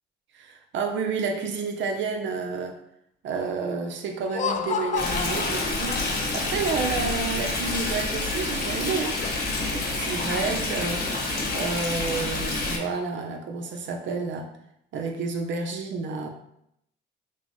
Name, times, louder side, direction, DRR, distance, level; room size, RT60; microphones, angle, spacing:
voice 1, 0.3-2.8 3.2-6.0 6.3-9.2 9.7-11.1 11.5-14.5 14.9-16.3, right 4 dB, 70° right, 4 dB, 0.7 m, -30 dB
Laughter, 4.2-6.5, left 6 dB, 40° left, 0.4 m, -30 dB
Stream, 4.9-12.8, left 2 dB, 55° left, 1.2 m, -28 dB
5.8 x 2.1 x 3.0 m, 0.75 s
cardioid pair, 90°, 20 cm